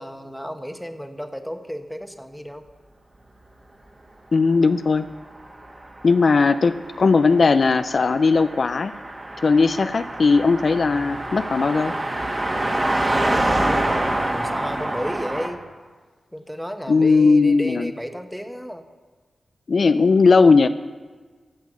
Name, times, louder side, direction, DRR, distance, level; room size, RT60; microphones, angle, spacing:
voice 1, 0.0-2.6 12.5-15.6 16.3-18.8, equal, ahead, 6 dB, 1.2 m, -33 dB
voice 2, 4.3-5.1 6.0-8.9 9.4-11.9 16.9-17.9 19.7-20.7, left 4 dB, 65° left, 11 dB, 0.4 m, -17 dB
Car passing by, 5.4-15.5, right 1 dB, 35° right, 2.1 m, -26 dB
15.0 x 7.3 x 6.3 m, 1.4 s
cardioid pair, 55°, 0 cm